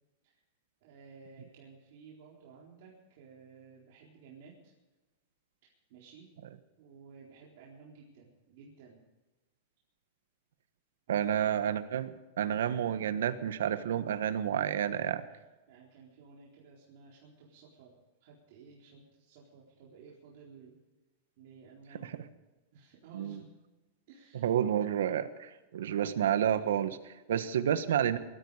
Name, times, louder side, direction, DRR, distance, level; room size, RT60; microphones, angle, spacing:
voice 1, 0.8-4.7 5.6-6.3 6.8-9.0 11.1-11.2 15.7-17.9 18.2-20.8 21.4-22.1 22.7-23.5 24.1-24.5, right 5 dB, 55° right, -4 dB, 4.0 m, -55 dB
voice 2, 11.1-15.2 22.0-22.1 23.1-23.4 24.3-28.2, right 9 dB, 90° right, 11 dB, 1.3 m, -30 dB
20.5 x 14.0 x 4.9 m, 1.1 s
supercardioid pair, 155°, 0 cm